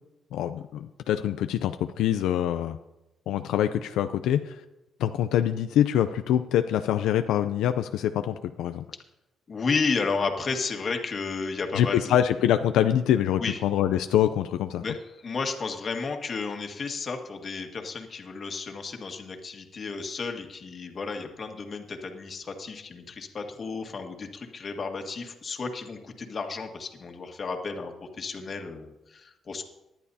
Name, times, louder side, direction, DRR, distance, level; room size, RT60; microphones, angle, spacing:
voice 1, 0.3-2.8 3.3-4.6 5.0-8.8 11.7-14.8, left 10 dB, 85° left, 9 dB, 0.4 m, -25 dB
voice 2, 9.5-12.2 13.4-13.6 14.8-29.6, left 4 dB, 45° left, 4 dB, 1.7 m, -32 dB
19.0 x 11.0 x 2.8 m, 0.98 s
cardioid pair, 90°, 0 cm